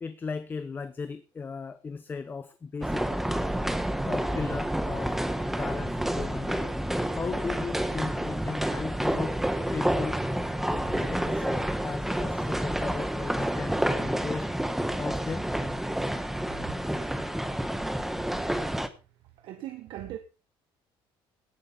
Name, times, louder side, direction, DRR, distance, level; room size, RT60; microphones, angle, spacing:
voice 1, 0.0-3.0 4.1-5.2 5.5-6.7 7.1-9.4 9.7-10.2 10.6-14.5 15.0-15.5, left 5 dB, 20° left, 0.9 m, -36 dB
sound 1, 2.8-18.9, right 1 dB, 5° right, 1.2 m, -29 dB
voice 2, 19.4-20.2, right 13 dB, 65° right, 1.5 m, -39 dB
17.5 x 8.8 x 5.5 m
cardioid pair, 160°, 10 cm